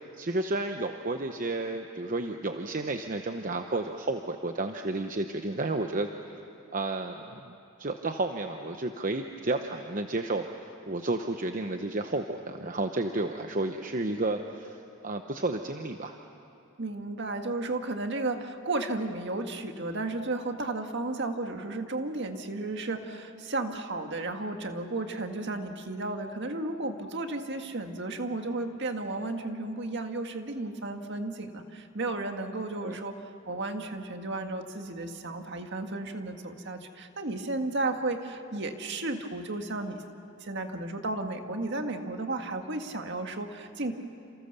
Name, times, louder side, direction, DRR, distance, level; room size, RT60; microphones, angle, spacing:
voice 1, 0.2-6.1 6.7-10.5 10.9-14.8 15.0-16.2 32.8-33.0, right 2 dB, 40° right, 5 dB, 0.9 m, -31 dB
voice 2, 16.8-40.0 40.4-43.9, right 2 dB, 55° right, 5 dB, 1.8 m, -33 dB
28.5 x 28.5 x 6.8 m, 2.8 s
head